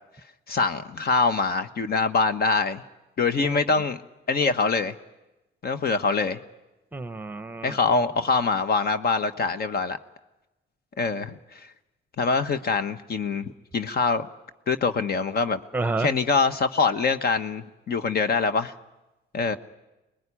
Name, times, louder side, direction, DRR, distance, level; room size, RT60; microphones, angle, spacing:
voice 1, 0.5-2.8 3.2-4.0 4.3-4.9 5.6-6.4 7.6-10.0 11.0-11.7 12.2-14.3 14.7-15.6 16.0-18.7 19.3-19.6, left 4 dB, 50° left, 11 dB, 1.2 m, -24 dB
voice 2, 6.9-8.0 15.7-16.1, right 3 dB, 10° right, 14 dB, 1.0 m, -30 dB
25.0 x 20.5 x 10.0 m, 1.0 s
cardioid pair, 90°, 20 cm